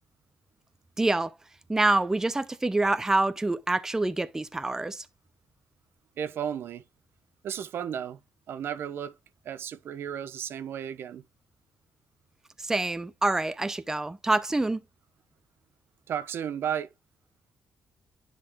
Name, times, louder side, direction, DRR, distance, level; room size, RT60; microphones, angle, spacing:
voice 1, 1.0-1.4 1.7-5.1 12.6-14.8, right 2 dB, 10° right, 0.6 m, -26 dB
voice 2, 6.2-6.8 7.4-8.2 8.5-9.2 9.4-11.2 16.1-16.9, right 9 dB, 70° right, 0.9 m, -33 dB
10.5 x 4.1 x 3.5 m
cardioid pair, 110°, 4 cm